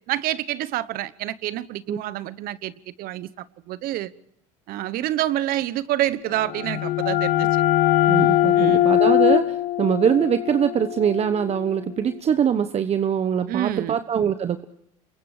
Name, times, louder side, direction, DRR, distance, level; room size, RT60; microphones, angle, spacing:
voice 1, 0.1-2.7 3.0-4.1 4.7-7.5 8.6-8.9 13.5-14.0, right 14 dB, 60° right, 1.1 m, -27 dB
sound 1, 6.3-11.8, left 14 dB, 55° left, 1.5 m, -21 dB
voice 2, 8.1-14.6, right 8 dB, 40° right, 1.2 m, -23 dB
28.0 x 23.0 x 5.0 m
hypercardioid pair, 85°, 17 cm